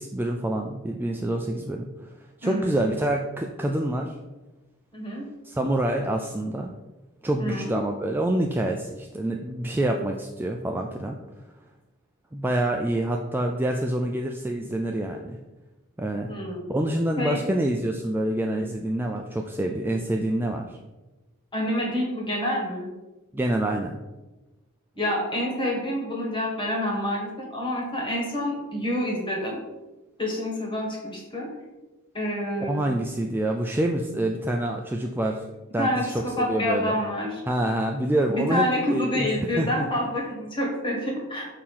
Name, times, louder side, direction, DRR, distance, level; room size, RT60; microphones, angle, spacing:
voice 1, 0.0-1.9 2.4-4.1 5.4-6.7 7.2-11.2 12.3-15.4 16.0-16.3 16.7-20.7 23.3-24.0 32.6-35.4 35.7-36.1 36.4-36.9 37.5-38.6 38.9-39.9, right 1 dB, 10° right, 1 dB, 0.3 m, -26 dB
voice 2, 2.4-2.8 4.9-5.2 7.4-7.7 16.3-16.7 17.2-17.4 21.5-22.9 24.9-29.6 30.2-31.5 32.1-32.9 35.8-37.3 38.3-41.5, left 1 dB, 25° left, -1 dB, 1.6 m, -28 dB
6.5 x 2.9 x 5.5 m, 1.1 s
head